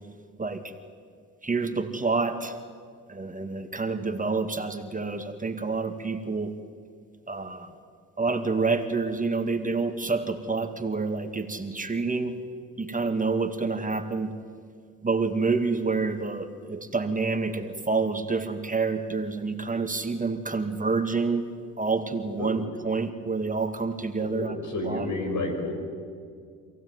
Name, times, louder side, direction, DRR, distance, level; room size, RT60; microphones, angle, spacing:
voice 1, 0.4-0.7 1.4-2.6 3.1-6.5 7.3-7.7 8.2-12.4 12.8-14.3 15.0-21.4 21.8-24.6 24.8-25.1, right 4 dB, 25° right, 7 dB, 2.0 m, -28 dB
voice 2, 24.2-25.7, left 2 dB, 60° left, 5 dB, 5.9 m, -30 dB
26.0 x 16.5 x 9.4 m, 2.2 s
supercardioid pair, 65°, 35 cm